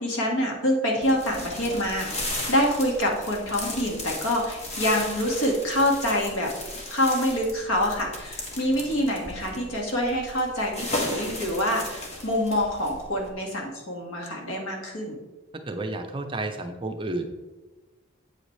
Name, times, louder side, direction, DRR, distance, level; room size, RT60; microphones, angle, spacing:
voice 1, 0.0-6.5 6.9-15.2, equal, 85° left, 0 dB, 2.0 m, -26 dB
sound 1, 1.0-13.3, left 1 dB, 30° left, 1.3 m, -36 dB
voice 2, 15.7-17.2, right 2 dB, 25° right, 5 dB, 0.7 m, -31 dB
8.3 x 8.2 x 3.3 m, 1.2 s
head